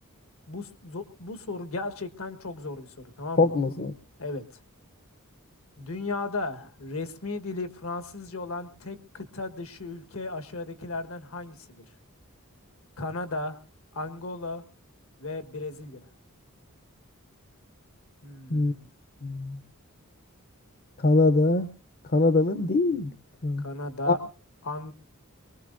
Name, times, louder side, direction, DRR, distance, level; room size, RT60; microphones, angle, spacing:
voice 1, 0.5-2.9 3.2-3.5 4.2-4.4 5.8-11.8 13.0-13.6 13.9-14.6 15.2-16.1 18.2-18.9 23.6-24.2 24.6-24.9, left 2 dB, 70° left, 8 dB, 1.4 m, -35 dB
voice 2, 3.4-3.9 18.5-18.7 19.2-19.6 21.0-21.7 22.1-23.1 23.4-23.6 24.1-24.2, left 2 dB, 45° left, 10 dB, 0.7 m, -22 dB
23.5 x 20.0 x 2.6 m, 0.37 s
head